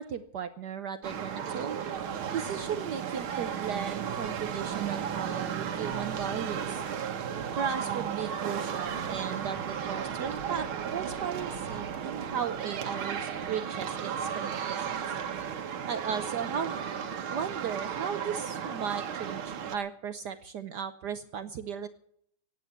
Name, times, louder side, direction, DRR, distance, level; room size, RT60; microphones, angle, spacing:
voice 1, 0.0-1.8 2.3-6.8 7.6-14.9 15.9-16.8 17.3-21.9, right 7 dB, 60° right, 11 dB, 1.3 m, -36 dB
sound 1, 1.0-19.8, right 8 dB, 80° right, 2.1 m, -34 dB
16.0 x 9.6 x 8.1 m, 0.68 s
omnidirectional pair, 2.2 m